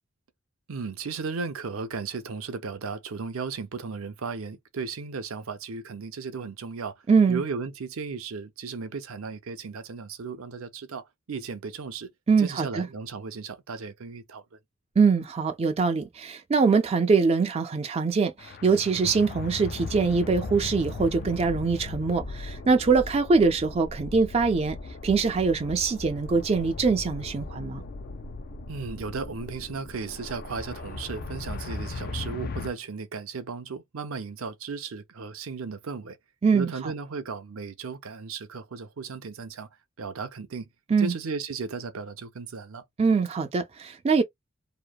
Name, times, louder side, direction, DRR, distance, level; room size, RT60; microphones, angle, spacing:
voice 1, 0.7-6.9 7.3-12.1 12.4-14.6 28.7-36.2 36.5-39.7 40.0-40.7 41.0-42.8, right 4 dB, 75° right, 0.6 m, -35 dB
voice 2, 7.1-7.4 12.3-12.9 15.0-24.8 25.0-27.8 36.4-36.9 40.9-41.1 43.0-44.2, right 4 dB, 30° right, 0.4 m, -23 dB
sound 1, 18.4-32.7, left 3 dB, 45° left, 0.4 m, -38 dB
2.8 x 2.1 x 2.2 m
head